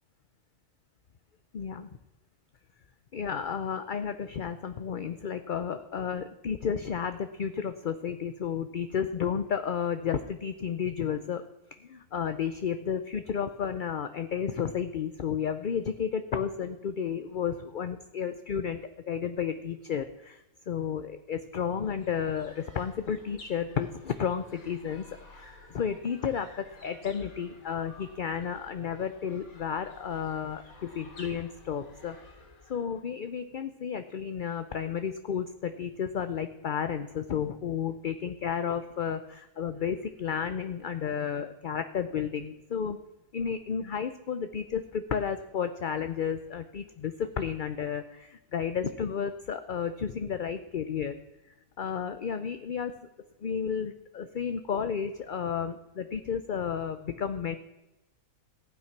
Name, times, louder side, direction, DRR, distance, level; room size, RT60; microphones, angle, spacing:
voice 1, 1.5-1.9 3.1-11.4 11.8-18.8 19.1-25.0 25.7-32.2 32.7-43.0 43.3-51.1 51.8-52.9 53.4-57.6, left 7 dB, 50° left, 10 dB, 0.6 m, -32 dB
sound 1, 21.5-33.0, left 2 dB, 80° left, 3.2 m, -53 dB
15.0 x 9.1 x 5.8 m, 1.0 s
omnidirectional pair, 1.5 m